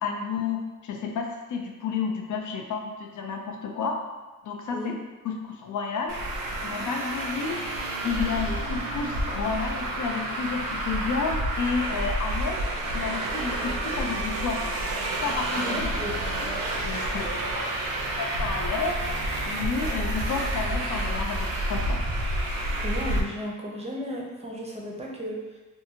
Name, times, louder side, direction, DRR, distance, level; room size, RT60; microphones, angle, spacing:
voice 1, 0.0-4.0 4.4-4.9 5.2-6.2 6.6-7.6 8.0-12.6 12.9-14.8 15.2-15.8 16.7-17.3 17.6-17.8 18.2-19.0 19.5-22.0, left 5 dB, 65° left, 2 dB, 0.5 m, -31 dB
Traffic noise roadway noise, 6.1-23.2, right 1 dB, 80° right, 0.5 m, -29 dB
voice 2, 15.6-16.1 22.8-25.6, equal, 20° right, -2 dB, 0.5 m, -34 dB
2.6 x 2.5 x 2.7 m, 1.2 s
cardioid pair, 110°, 33 cm